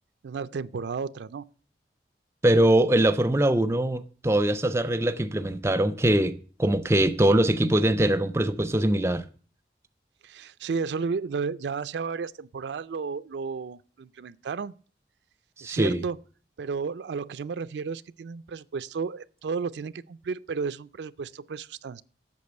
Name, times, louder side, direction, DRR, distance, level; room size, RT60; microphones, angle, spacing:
voice 1, 0.2-1.4 10.2-14.7 15.6-16.2 16.6-22.0, right 5 dB, 80° right, 0.4 m, -33 dB
voice 2, 2.4-9.3 15.6-16.0, right 1 dB, 15° right, 0.4 m, -22 dB
8.4 x 6.6 x 7.9 m
head